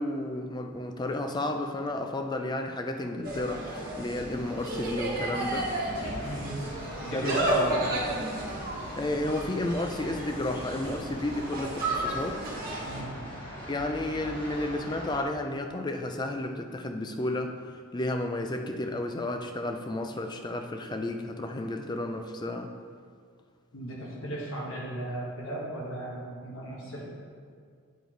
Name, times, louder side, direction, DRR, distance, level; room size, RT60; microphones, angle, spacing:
voice 1, 0.0-5.7 7.1-7.9 9.0-12.4 13.7-17.6 17.9-22.7, left 1 dB, 20° left, 5 dB, 0.4 m, -32 dB
Insect, 3.2-13.0, right 2 dB, 40° right, 1.5 m, -33 dB
sound 1, 5.1-15.2, equal, 40° left, 2.0 m, -42 dB
voice 2, 6.2-6.6 7.0-7.6 12.9-13.1 23.7-27.1, right 1 dB, 65° left, -4 dB, 1.4 m, -36 dB
8.3 x 4.5 x 4.5 m, 2.1 s
head